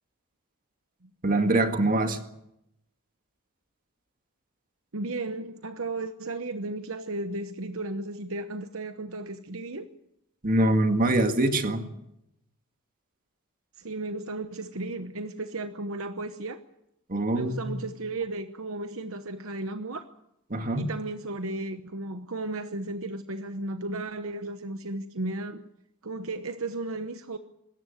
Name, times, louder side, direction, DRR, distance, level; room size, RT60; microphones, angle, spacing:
voice 1, 1.2-2.2 10.4-11.8 17.1-17.7 20.5-20.9, right 1 dB, 40° right, 6 dB, 2.0 m, -24 dB
voice 2, 4.9-9.9 13.8-16.6 17.3-20.0 20.8-25.6 26.0-27.4, right 2 dB, 65° right, 8 dB, 1.1 m, -34 dB
24.5 x 14.0 x 9.5 m, 0.82 s
head